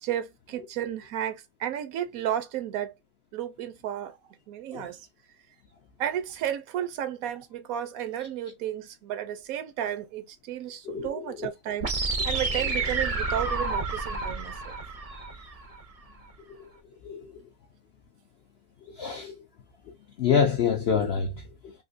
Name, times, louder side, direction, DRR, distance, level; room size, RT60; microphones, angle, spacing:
voice 1, 0.0-2.9 3.3-4.2 4.5-5.0 6.0-14.7, right 10 dB, 75° right, 1.0 m, -33 dB
voice 2, 10.8-11.5 15.1-15.2 16.5-16.7 17.0-17.3 19.0-19.3 20.2-21.7, left 6 dB, 65° left, 0.6 m, -27 dB
sound 1, 11.8-15.8, right 3 dB, 55° right, 0.4 m, -29 dB
3.6 x 2.6 x 2.4 m
omnidirectional pair, 1.6 m